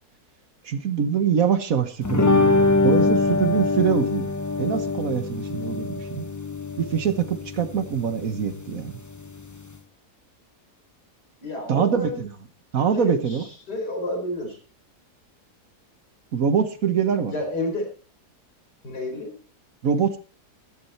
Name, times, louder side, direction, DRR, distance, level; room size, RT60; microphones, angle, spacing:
voice 1, 0.6-4.3 4.6-6.3 6.8-9.0 11.7-12.3 12.7-13.4 16.3-17.3 19.8-20.2, right 7 dB, 60° right, 11 dB, 1.5 m, -24 dB
sound 1, 2.0-9.8, left 3 dB, 20° left, 0.5 m, -24 dB
voice 2, 11.4-12.3 12.9-14.6 17.3-17.9 18.8-19.3, left 2 dB, 85° left, 2 dB, 5.0 m, -30 dB
14.0 x 11.0 x 4.2 m, 0.34 s
omnidirectional pair, 1.7 m